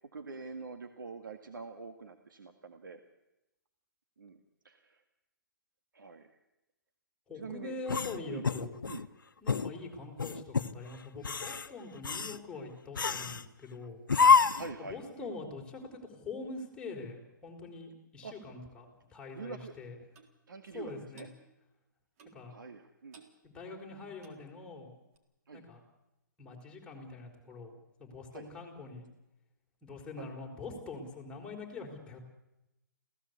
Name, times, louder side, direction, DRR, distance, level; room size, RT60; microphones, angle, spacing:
voice 1, 0.1-3.0 4.2-5.0 5.9-6.4 7.3-7.8 8.3-8.5 8.8-9.1 14.5-15.3 18.2-18.3 19.3-19.7 20.5-21.3 22.5-23.2 25.5-25.6 28.3-28.5 30.2-30.3, right 4 dB, 80° right, 6 dB, 2.0 m, -45 dB
voice 2, 7.3-8.8 9.4-14.0 14.8-20.0 20.7-21.3 22.3-22.5 23.4-24.9 25.5-25.8 26.4-29.1 29.8-32.2, left 3 dB, 10° left, -1 dB, 4.8 m, -44 dB
sound 1, 7.9-9.1 9.5-9.7 10.2-10.7 11.2-11.7 12.0-12.4 13.0-13.4 14.1-14.8, left 5 dB, 85° left, 1.0 m, -27 dB
Clock, 20.1-20.3 21.1-21.4 22.2-22.5 23.1-23.4 24.1-24.5 25.1-25.2, right 5 dB, 45° right, 3.9 m, -56 dB
28.0 x 17.0 x 8.3 m, 0.95 s
hypercardioid pair, 140°, 11 cm